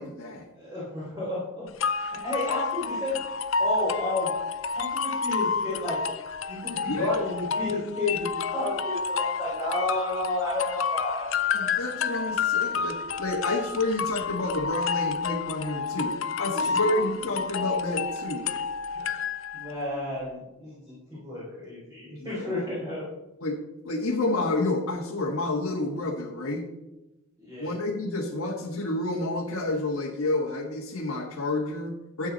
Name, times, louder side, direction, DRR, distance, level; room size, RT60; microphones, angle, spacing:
voice 1, 0.0-0.4 6.9-7.2 11.5-18.5 22.2-22.5 23.4-23.6 23.8-26.6 27.6-32.3, left 2 dB, 85° left, -2 dB, 1.5 m, -29 dB
voice 2, 0.5-4.3 4.8-6.0 6.5-11.7 16.5-17.1 18.9-23.1 27.4-27.8, left 2 dB, 20° right, -9 dB, 3.8 m, -32 dB
sound 1, 1.8-19.7, left 5 dB, 65° left, 0.6 m, -30 dB
12.5 x 8.3 x 4.1 m, 0.99 s
head